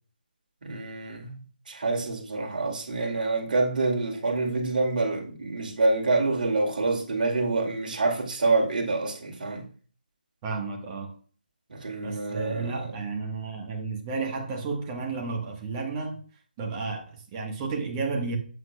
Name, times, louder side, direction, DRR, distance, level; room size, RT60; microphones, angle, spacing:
voice 1, 0.6-1.4 1.7-9.7 11.7-12.9, right 3 dB, 60° right, 2.4 m, -27 dB
voice 2, 10.4-11.1 12.0-16.2 16.6-18.4, right 4 dB, 20° right, 1.2 m, -32 dB
8.2 x 7.3 x 2.2 m
figure-of-eight pair, 155°, 5 cm